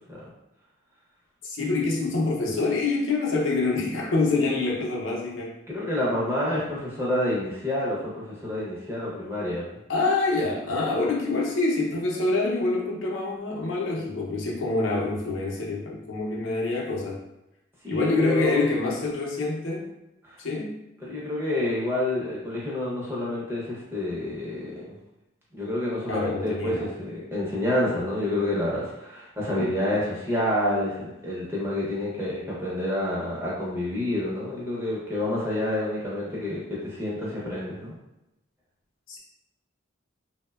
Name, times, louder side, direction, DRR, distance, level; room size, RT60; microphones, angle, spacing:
voice 1, 1.4-5.5 9.9-17.2 17.9-19.9 20.4-20.8 26.1-26.9 39.1-39.2, left 3 dB, 75° left, -2 dB, 0.5 m, -26 dB
voice 2, 5.7-9.6 17.8-18.6 20.2-20.4 21.0-24.8 25.5-37.9, left 1 dB, 10° right, -6 dB, 0.6 m, -28 dB
2.8 x 2.1 x 2.2 m, 0.91 s
head